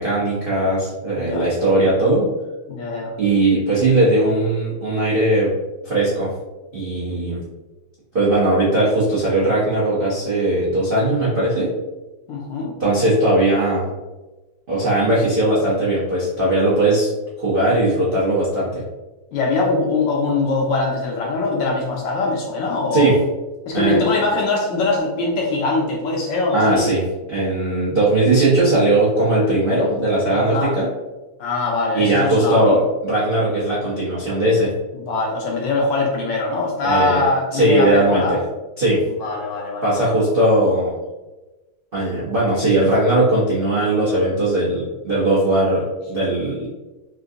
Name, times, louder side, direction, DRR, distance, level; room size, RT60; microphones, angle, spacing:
voice 1, 0.0-2.3 3.2-5.5 5.8-6.3 6.7-7.4 8.1-11.7 12.8-13.9 14.7-17.1 17.4-18.8 22.9-23.2 23.7-24.0 26.5-27.0 27.3-30.9 31.9-34.7 36.8-37.2 37.5-38.4 38.8-39.0 39.8-40.9 41.9-46.7, right 1 dB, 65° right, -9 dB, 0.5 m, -18 dB
voice 2, 2.7-3.1 12.3-12.7 19.3-23.2 23.7-26.9 30.3-30.7 31.4-32.8 34.9-38.4 39.2-40.2, left 3 dB, 75° left, -2 dB, 1.2 m, -22 dB
3.8 x 2.6 x 2.4 m, 1.1 s
omnidirectional pair, 2.3 m